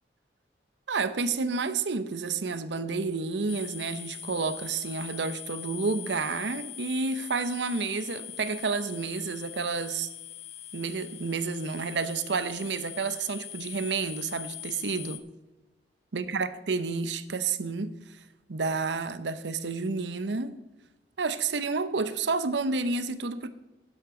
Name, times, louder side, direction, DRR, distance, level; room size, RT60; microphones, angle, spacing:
voice 1, 0.9-10.1 10.7-15.2 16.1-17.9 18.5-20.6 21.2-23.5, right 4 dB, 85° right, 0.7 m, -30 dB
sound 1, 3.5-15.2, left 11 dB, 35° left, 0.7 m, -42 dB
12.0 x 10.5 x 3.8 m
head